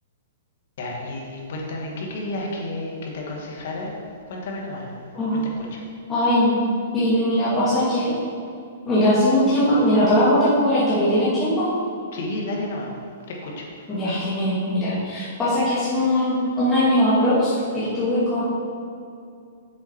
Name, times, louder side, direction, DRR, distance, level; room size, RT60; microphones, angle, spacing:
voice 1, 0.8-3.9 4.3-4.9 5.3-5.8 12.1-12.9 13.3-13.7, left 1 dB, 55° left, -1 dB, 1.9 m, -31 dB
voice 2, 6.1-6.6 6.9-8.1 8.9-11.7 13.9-18.4, left 1 dB, 10° left, -12 dB, 2.2 m, -20 dB
7.5 x 7.3 x 4.6 m, 2.4 s
hypercardioid pair, 160°, 0 cm